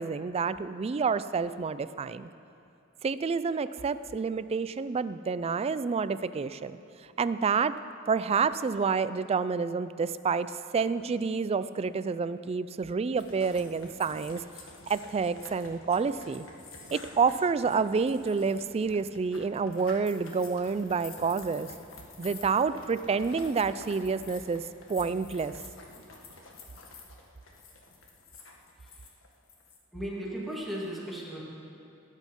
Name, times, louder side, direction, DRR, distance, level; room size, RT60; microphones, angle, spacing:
voice 1, 0.0-2.3 3.0-6.8 7.2-7.8 8.1-14.4 14.9-16.5 16.9-21.7 22.2-25.5, right 5 dB, 30° right, 14 dB, 0.3 m, -29 dB
sound 1, 13.2-29.8, left 3 dB, 75° left, 1.5 m, -49 dB
voice 2, 29.9-31.4, right 1 dB, ahead, -5 dB, 2.1 m, -36 dB
20.0 x 8.3 x 5.3 m, 2.7 s
head